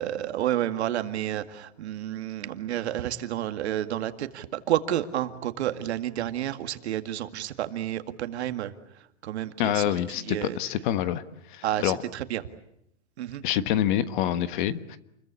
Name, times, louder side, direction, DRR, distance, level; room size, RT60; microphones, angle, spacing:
voice 1, 0.0-8.7 9.2-10.6 11.6-12.4 13.2-13.4, right 12 dB, 65° right, 9 dB, 2.1 m, -30 dB
voice 2, 9.6-11.2 11.5-12.0 13.4-15.0, left 12 dB, 40° left, 13 dB, 1.4 m, -26 dB
29.0 x 22.0 x 8.4 m, 0.77 s
hypercardioid pair, 155°, 36 cm